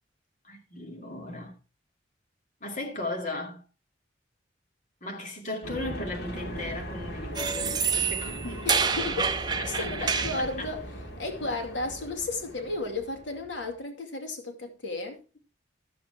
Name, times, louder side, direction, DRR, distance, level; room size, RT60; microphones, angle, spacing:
voice 1, 0.4-1.5 2.6-3.6 5.0-8.7 9.6-10.7, left 2 dB, 40° left, 2.3 m, -37 dB
sound 1, 5.6-13.7, equal, 60° left, 3.2 m, -39 dB
sound 2, 7.4-10.5, right 5 dB, 25° right, 0.7 m, -28 dB
voice 2, 8.6-10.8 11.2-15.2, left 2 dB, 75° left, 2.4 m, -34 dB
13.5 x 7.3 x 4.5 m
head